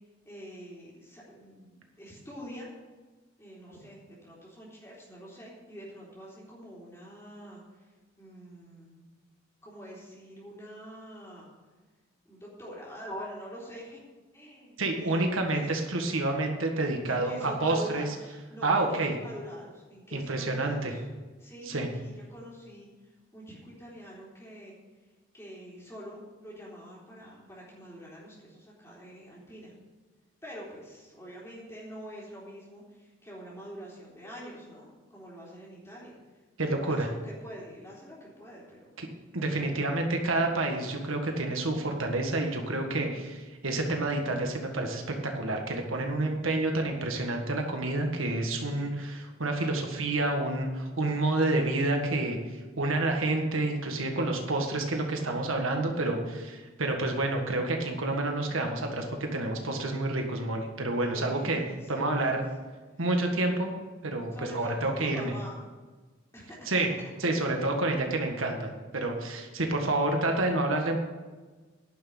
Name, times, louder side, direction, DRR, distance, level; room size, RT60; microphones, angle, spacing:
voice 1, 0.3-2.7 3.4-7.9 8.2-9.0 9.6-11.5 12.3-14.0 14.3-15.7 17.0-21.1 21.4-24.8 25.3-29.7 30.4-36.1 36.7-38.9 39.6-39.9 48.7-49.0 61.1-62.2 64.3-65.6 66.3-66.9, equal, 15° left, -6 dB, 3.7 m, -45 dB
voice 2, 14.8-18.1 18.6-19.1 20.1-20.9 21.7-21.9 36.6-37.1 39.0-39.1 39.3-52.4 52.8-61.6 61.9-62.4 63.0-63.7 64.0-65.3 66.7-66.9 67.2-71.0, right 2 dB, 85° right, 3 dB, 1.7 m, -29 dB
10.5 x 6.3 x 8.7 m, 1.3 s
head